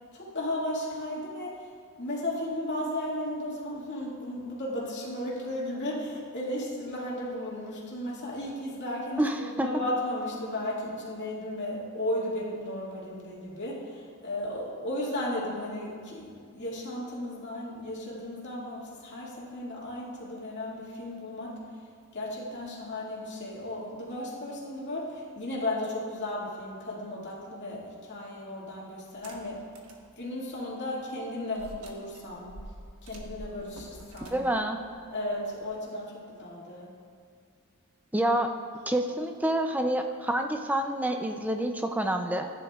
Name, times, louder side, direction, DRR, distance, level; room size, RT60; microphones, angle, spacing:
voice 1, 0.1-1.7 2.0-21.6 22.1-29.6 30.2-32.5 33.0-34.4 35.1-36.9, left 1 dB, 50° left, -6 dB, 2.2 m, -35 dB
voice 2, 9.2-9.7 34.3-34.8 38.1-38.5 38.9-42.5, right 1 dB, 5° right, 5 dB, 0.4 m, -27 dB
sound 1, 29.1-30.1 30.5-30.6 31.5-35.8, right 1 dB, 80° right, 1.2 m, -47 dB
15.0 x 10.0 x 2.4 m, 2.2 s
head